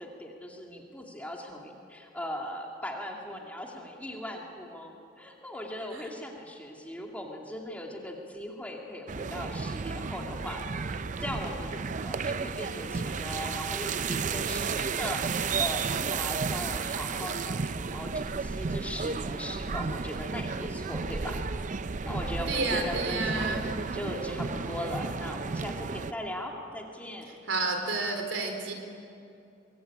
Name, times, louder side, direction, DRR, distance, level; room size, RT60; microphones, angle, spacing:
voice 1, 0.0-21.4 21.7-23.5 23.9-27.3, left 1 dB, 10° left, 0 dB, 2.5 m, -39 dB
sound 1, 9.1-26.1, right 5 dB, 40° right, 0.5 m, -33 dB
voice 2, 22.5-23.6 27.5-28.7, right 3 dB, 75° right, 4 dB, 3.7 m, -30 dB
23.5 x 21.0 x 8.8 m, 2.6 s
head